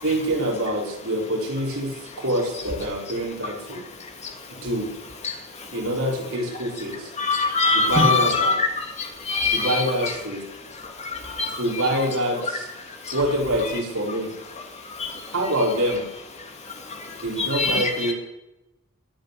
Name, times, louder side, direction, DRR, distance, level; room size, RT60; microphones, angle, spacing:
voice 1, 0.0-3.9 4.6-4.9 5.7-7.1 7.7-8.6 9.5-10.4 11.6-12.7 13.1-14.3 15.3-16.0 17.2-18.1, right 1 dB, 70° right, -2 dB, 4.7 m, -25 dB
voice 2, 7.2-8.7 9.3-10.1 11.4-11.5 17.5-18.1, left 3 dB, 30° left, 3 dB, 2.8 m, -22 dB
22.5 x 8.3 x 6.9 m, 0.94 s
head